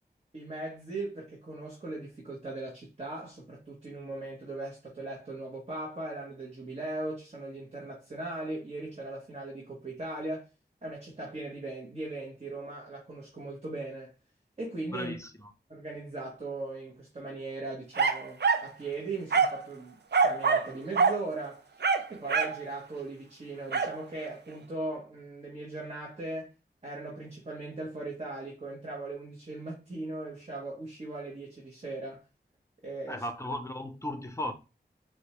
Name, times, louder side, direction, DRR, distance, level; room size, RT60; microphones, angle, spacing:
voice 1, 0.3-10.5 10.8-14.1 14.6-15.2 15.7-21.7 22.1-26.5 26.8-32.2 32.8-33.2, right 2 dB, 35° right, 1.0 m, -39 dB
voice 2, 14.9-15.5 33.1-34.5, left 1 dB, 15° left, 0.6 m, -36 dB
sound 1, 18.0-18.7 19.3-19.6 20.1-20.7 21.0-21.2 21.8-22.6 23.7-24.0, right 5 dB, 70° right, 0.5 m, -25 dB
4.3 x 2.2 x 3.0 m
wide cardioid pair, 60°, 18 cm